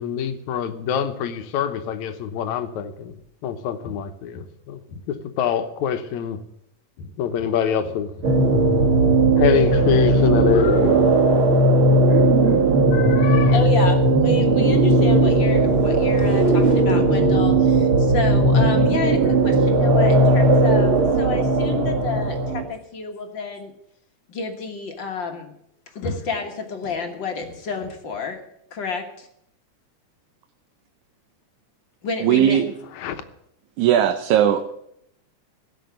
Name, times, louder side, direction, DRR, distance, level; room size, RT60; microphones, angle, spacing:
voice 1, 0.0-3.2 3.4-6.4 7.0-8.3 9.4-11.4 12.1-12.2 12.5-12.6 12.9-13.6 15.7-15.8 16.2-16.3 26.0-26.2 33.0-33.2, left 8 dB, 75° left, 2.3 m, -25 dB
sound 1, 8.2-22.6, right 2 dB, 50° right, 2.0 m, -17 dB
voice 2, 13.5-23.7 24.3-25.5 26.0-28.4 28.7-29.3 32.0-32.6, left 4 dB, 45° left, 1.8 m, -30 dB
voice 3, 32.2-32.7 33.8-34.8, right 10 dB, 80° right, 2.2 m, -18 dB
17.0 x 6.1 x 9.3 m
omnidirectional pair, 3.4 m